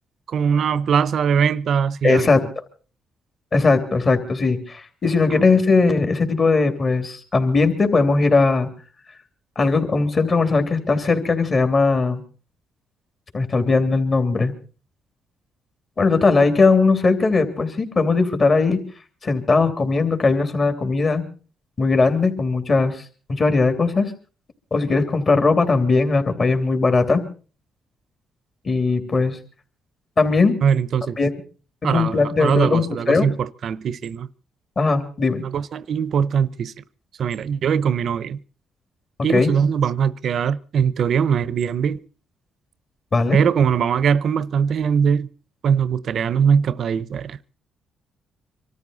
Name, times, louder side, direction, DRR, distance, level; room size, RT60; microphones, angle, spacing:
voice 1, 0.3-2.3 5.3-5.4 30.6-31.2 31.8-34.3 35.4-36.7 37.2-38.4 39.2-42.0 43.3-45.3 45.6-47.4, right 7 dB, 60° right, 0.8 m, -21 dB
voice 2, 2.0-2.4 3.5-8.7 9.5-12.2 13.3-14.5 16.0-18.8 19.2-21.2 21.8-23.0 23.3-24.1 24.7-27.2 28.6-29.4 30.2-30.6 31.2-31.3 31.8-33.3 34.8-35.4 39.3-39.5 43.1-43.4, left 3 dB, 40° left, 3.2 m, -19 dB
25.0 x 13.5 x 4.0 m
cardioid pair, 90°, 0 cm